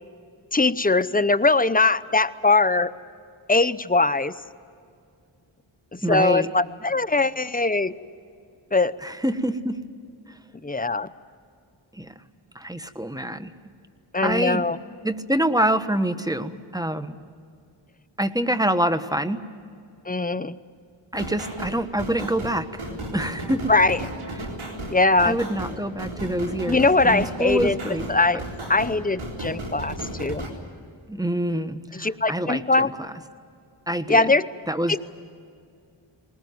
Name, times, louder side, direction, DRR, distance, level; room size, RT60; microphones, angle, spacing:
voice 1, 0.5-2.9 3.5-4.3 5.9-7.9 8.7-9.0 10.6-11.1 14.1-14.8 20.1-20.6 23.7-24.0 24.9-25.4 26.7-27.8 28.1-28.4 28.7-30.4 31.9-32.9 34.1-34.5 34.9-35.0, left 3 dB, 15° left, 14 dB, 0.8 m, -21 dB
voice 2, 6.0-6.5 9.0-9.8 11.9-12.1 12.5-13.5 14.2-14.6 15.0-17.2 18.2-19.4 21.1-23.7 24.4-24.5 25.2-28.1 31.1-33.1 33.9-34.3 34.7-35.0, right 1 dB, 10° right, 11 dB, 1.4 m, -26 dB
sound 1, 21.1-30.5, right 1 dB, 75° right, 4.0 m, -34 dB
20.5 x 19.0 x 9.5 m, 2.4 s
cardioid pair, 45°, 49 cm